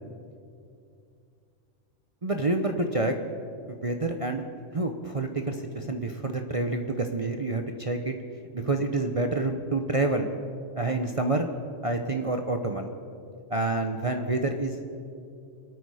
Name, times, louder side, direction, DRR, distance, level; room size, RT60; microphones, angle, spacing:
voice 1, 2.2-3.2 3.7-4.4 4.7-8.2 8.5-10.3 10.8-11.5 11.8-12.9 13.5-14.9, right 2 dB, 30° right, 4 dB, 0.7 m, -28 dB
27.0 x 9.3 x 4.9 m, 2.5 s
omnidirectional pair, 1.3 m